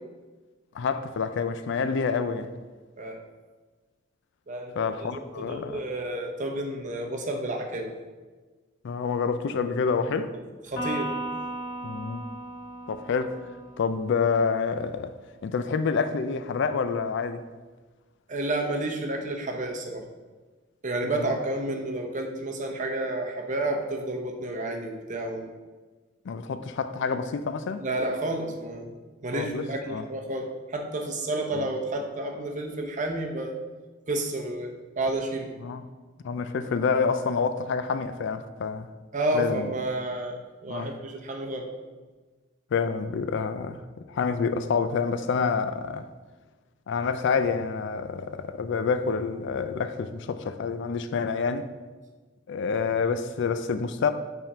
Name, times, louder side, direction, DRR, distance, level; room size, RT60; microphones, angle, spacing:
voice 1, 0.7-2.5 4.8-5.8 8.8-10.3 11.8-12.2 12.9-13.4 13.8-15.1 15.4-17.4 21.0-21.3 26.3-27.9 29.3-30.0 31.5-31.7 35.6-35.8 36.2-38.9 39.3-39.7 40.7-41.0 42.7-46.1 46.9-51.7 52.5-54.1, left 5 dB, 65° left, 0.4 m, -28 dB
voice 2, 5.0-7.9 10.7-11.4 18.3-20.0 20.8-25.5 27.8-29.0 29.2-33.6 34.1-35.5 39.1-41.7, right 1 dB, 40° right, 0.8 m, -30 dB
Electric guitar, 10.8-14.3, right 1 dB, 45° left, 1.3 m, -36 dB
5.7 x 3.6 x 5.4 m
head